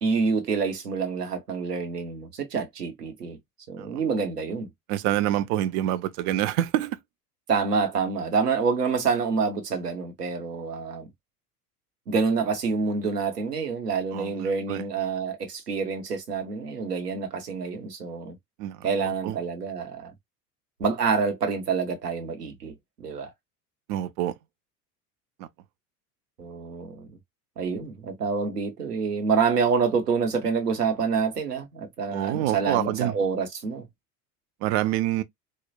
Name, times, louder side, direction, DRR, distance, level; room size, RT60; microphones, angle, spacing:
voice 1, 0.0-3.4 3.7-4.7 7.5-11.1 12.1-18.4 18.8-20.1 20.8-23.3 26.4-27.1 27.6-33.9, right 5 dB, 85° right, 1.1 m, -27 dB
voice 2, 4.9-7.0 14.1-14.8 18.6-19.4 23.9-24.3 25.4-25.5 32.1-33.2 34.6-35.2, right 13 dB, 50° right, 0.7 m, -27 dB
4.3 x 2.4 x 2.2 m
figure-of-eight pair, 75°, 46 cm